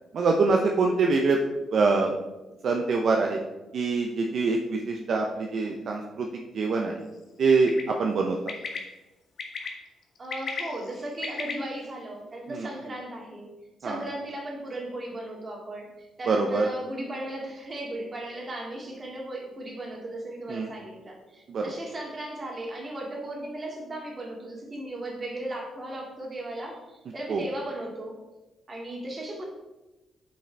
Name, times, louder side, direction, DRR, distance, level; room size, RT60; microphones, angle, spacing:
voice 1, 0.1-1.4 1.7-2.2 2.6-3.4 3.7-7.0 7.4-8.5 12.5-12.7 13.8-14.0 16.3-16.7 20.5-20.7 21.5-21.7 27.3-27.5, right 4 dB, 60° right, 2 dB, 0.7 m, -24 dB
Bird, 7.5-7.8 8.5-8.8 9.4-9.7 10.2-11.5, left 5 dB, 60° left, 1.2 m, -34 dB
voice 2, 10.2-13.5 13.8-28.2 28.7-29.5, right 1 dB, 35° right, -1 dB, 2.1 m, -36 dB
9.0 x 5.2 x 3.4 m, 1.1 s
cardioid pair, 100°, 0 cm